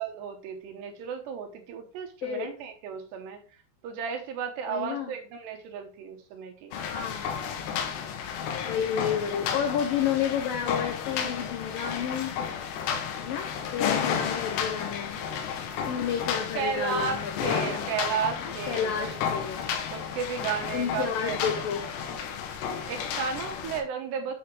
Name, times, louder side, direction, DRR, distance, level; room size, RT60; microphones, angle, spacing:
voice 1, 0.0-3.4 3.8-6.8 16.6-19.2 19.9-21.4 21.8-21.9 22.9-24.3, right 7 dB, 70° right, 5 dB, 2.9 m, -33 dB
voice 2, 4.7-5.1 6.7-7.5 8.7-12.4 13.2-15.2 15.9-17.8 18.7-19.6 20.7-21.8, left 8 dB, 90° left, 5 dB, 1.9 m, -31 dB
sound 1, 6.7-23.8, left 7 dB, 70° left, 3.0 m, -32 dB
9.7 x 5.7 x 4.6 m, 0.36 s
omnidirectional pair, 5.7 m